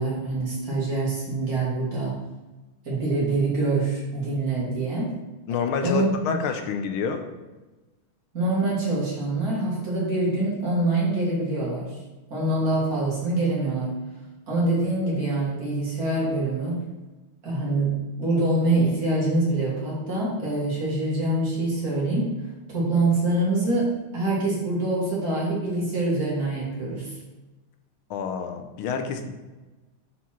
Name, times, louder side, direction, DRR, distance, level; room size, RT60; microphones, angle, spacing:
voice 1, 0.0-2.2 2.9-5.1 5.8-6.1 8.3-12.0 12.3-14.0 14.5-16.8 17.4-22.3 22.7-27.1, right 2 dB, 45° right, -6 dB, 2.1 m, -25 dB
voice 2, 5.5-7.2 28.1-29.3, left 6 dB, 75° left, 6 dB, 1.4 m, -28 dB
6.2 x 4.1 x 4.3 m, 1.2 s
omnidirectional pair, 2.4 m